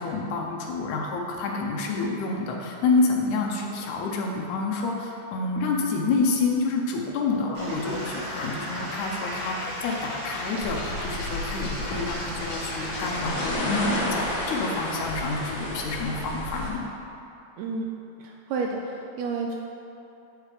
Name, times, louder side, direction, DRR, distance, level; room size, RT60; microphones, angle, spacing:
voice 1, 0.0-16.9, left 3 dB, 85° left, 0 dB, 2.2 m, -28 dB
sound 1, 7.1-14.0, left 2 dB, 70° left, 1.1 m, -39 dB
Stream / Liquid, 7.5-13.5, right 1 dB, 45° right, 1.6 m, -37 dB
sound 2, 10.6-16.7, left 1 dB, 55° left, 1.7 m, -32 dB
voice 2, 17.6-17.9 18.2-19.5, right 4 dB, 80° right, 0 dB, 1.8 m, -30 dB
8.3 x 5.0 x 4.8 m, 2.8 s
omnidirectional pair, 3.3 m